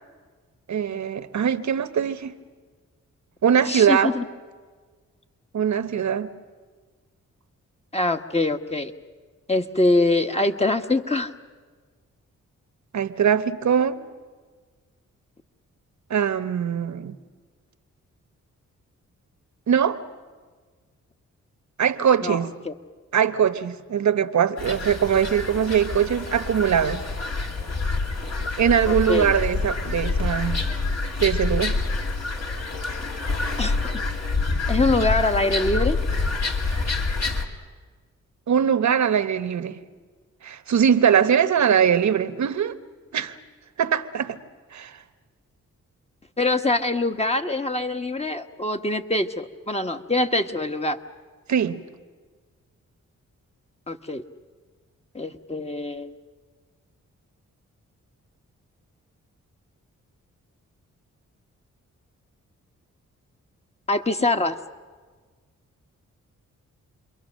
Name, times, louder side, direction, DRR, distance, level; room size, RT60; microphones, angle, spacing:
voice 1, 0.7-2.3 3.4-4.1 5.5-6.3 12.9-14.0 16.1-17.1 19.7-20.0 21.8-22.5 23.1-27.0 28.6-30.6 31.2-31.8 38.5-39.8 40.4-42.7 43.1-43.4 43.8-44.4 44.7-44.9 51.5-51.8, right 8 dB, 65° right, 1.1 m, -21 dB
voice 2, 3.7-4.2 7.9-8.9 9.5-11.3 22.2-22.4 22.6-22.7 28.9-29.3 33.6-34.0 34.7-36.0 46.4-51.0 53.9-54.2 55.1-56.2 63.9-64.6, left 2 dB, 20° left, 1.3 m, -24 dB
sound 1, 24.6-37.4, left 3 dB, 55° left, 2.5 m, -27 dB
29.0 x 22.5 x 6.5 m
cardioid pair, 65°, 30 cm